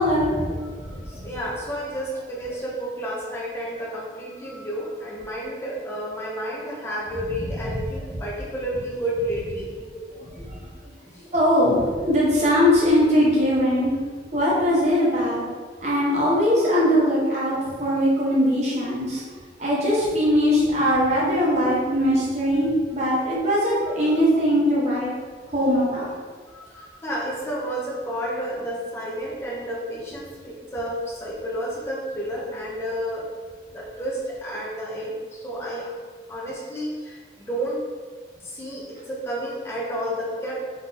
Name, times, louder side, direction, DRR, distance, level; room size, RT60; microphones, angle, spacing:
voice 1, 0.0-1.2 7.4-7.8 9.9-10.6 11.3-14.0 14.3-15.4 15.8-19.2 19.6-25.1 25.5-26.1, equal, 40° right, -6 dB, 1.1 m, -21 dB
voice 2, 0.6-9.7 11.1-11.3 26.5-33.3 33.7-36.0 36.3-37.8 38.5-40.6, equal, 15° left, -6 dB, 0.9 m, -31 dB
3.9 x 3.0 x 4.0 m, 1.6 s
head